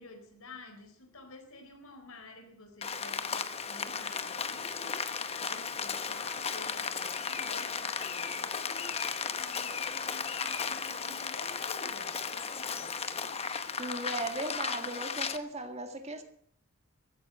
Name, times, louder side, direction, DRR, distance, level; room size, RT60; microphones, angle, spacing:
voice 1, 0.0-5.0 5.5-13.4, left 2 dB, 75° left, 6 dB, 4.0 m, -50 dB
Rain, 2.8-15.4, left 6 dB, 30° left, 0.9 m, -35 dB
voice 2, 13.8-16.2, right 2 dB, 30° right, 6 dB, 1.9 m, -37 dB
15.5 x 14.0 x 5.8 m, 0.64 s
head